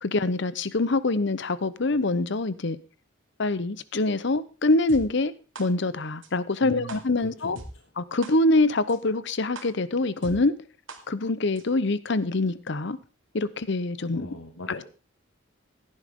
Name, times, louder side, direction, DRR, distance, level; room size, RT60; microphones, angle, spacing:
voice 1, 0.0-2.8 3.4-5.3 5.6-7.6 8.0-10.5 11.1-13.0 13.3-14.3 14.7-14.8, left 2 dB, 60° left, 0.8 m, -25 dB
sound 1, 4.9-5.0 5.6-5.7 6.2-6.3 6.9-7.0 7.6-7.7 8.2-8.3 8.9-9.0 9.6-9.7 10.2-10.3 10.9-11.0 11.6-11.7, right 3 dB, 75° right, 2.5 m, -40 dB
voice 2, 6.6-7.9 14.1-14.8, left 1 dB, 80° left, 1.7 m, -41 dB
16.0 x 10.5 x 3.7 m
head